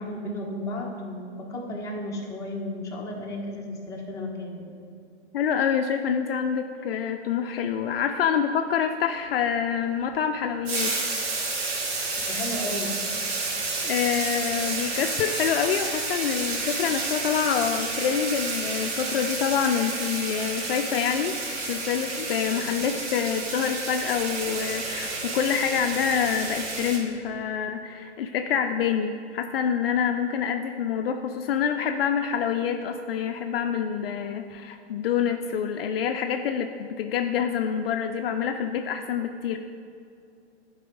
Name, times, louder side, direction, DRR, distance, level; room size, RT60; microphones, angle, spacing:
voice 1, 0.0-4.7 12.3-13.0 22.5-22.6, left 1 dB, 10° left, -4 dB, 1.3 m, -34 dB
voice 2, 5.3-10.9 13.8-21.3 21.7-39.6, left 7 dB, 55° left, 6 dB, 0.6 m, -26 dB
sound 1, 10.6-27.0, right 3 dB, 60° right, 2.1 m, -30 dB
11.5 x 4.8 x 5.3 m, 2.5 s
hypercardioid pair, 140°, 35 cm